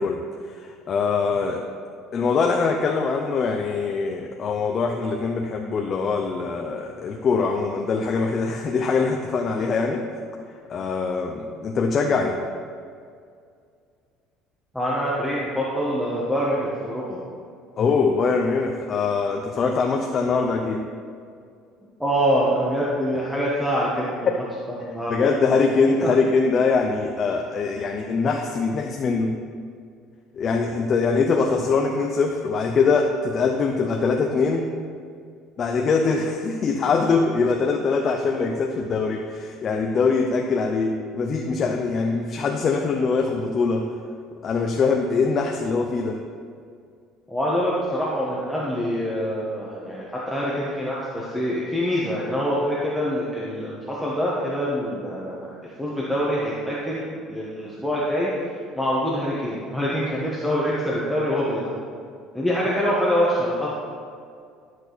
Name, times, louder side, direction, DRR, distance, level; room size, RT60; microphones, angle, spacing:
voice 1, 0.0-1.6 2.1-10.1 10.7-12.4 17.8-20.8 24.3-24.4 25.1-29.4 30.3-34.7 35.6-43.9 44.4-46.2, left 4 dB, 35° left, 2 dB, 0.7 m, -23 dB
voice 2, 14.7-17.2 22.0-25.3 26.0-26.1 47.3-55.5 55.8-58.3 58.7-61.7 62.3-63.7, equal, ahead, -7 dB, 1.4 m, -25 dB
12.0 x 6.3 x 4.1 m, 2.2 s
cardioid pair, 130°, 0 cm